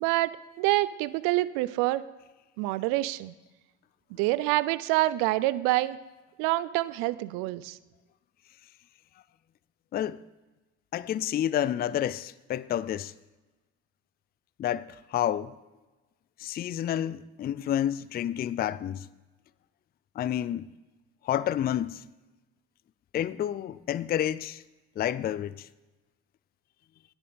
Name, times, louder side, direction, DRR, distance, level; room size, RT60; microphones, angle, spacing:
voice 1, 0.0-2.0 2.6-3.3 4.1-6.0 6.4-7.8, right 18 dB, 75° right, 0.5 m, -27 dB
voice 2, 10.9-13.1 14.6-15.5 16.4-19.0 20.2-20.7 21.2-22.0 23.1-24.6 25.0-25.7, left 11 dB, 30° left, 0.4 m, -29 dB
10.0 x 7.1 x 5.2 m
hypercardioid pair, 75°, 33 cm